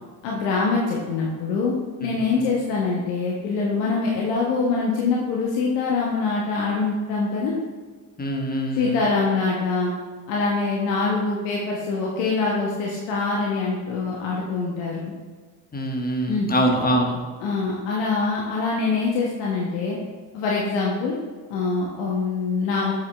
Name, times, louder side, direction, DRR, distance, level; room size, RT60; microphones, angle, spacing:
voice 1, 0.2-7.5 8.7-9.9 10.3-15.1 16.3-16.5 17.4-20.0 20.3-21.2 21.5-22.9, left 4 dB, 65° left, -3 dB, 1.2 m, -24 dB
voice 2, 2.0-2.5 8.2-9.0 15.7-17.2, right 1 dB, 20° left, 1 dB, 1.4 m, -24 dB
7.3 x 6.3 x 3.3 m, 1.4 s
hypercardioid pair, 60°, 46 cm